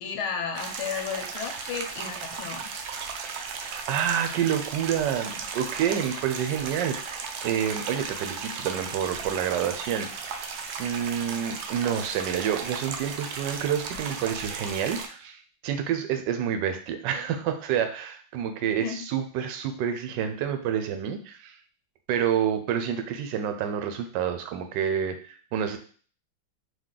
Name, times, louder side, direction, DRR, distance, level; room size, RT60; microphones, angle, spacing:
voice 1, 0.0-2.7 18.8-19.0, left 6 dB, 85° left, 3 dB, 1.5 m, -33 dB
sound 1, 0.6-15.1, right 5 dB, 85° right, 0.8 m, -36 dB
voice 2, 3.6-10.4 10.8-21.5 22.1-25.8, right 8 dB, 70° right, 7 dB, 1.2 m, -28 dB
4.0 x 2.8 x 3.7 m, 0.43 s
omnidirectional pair, 2.2 m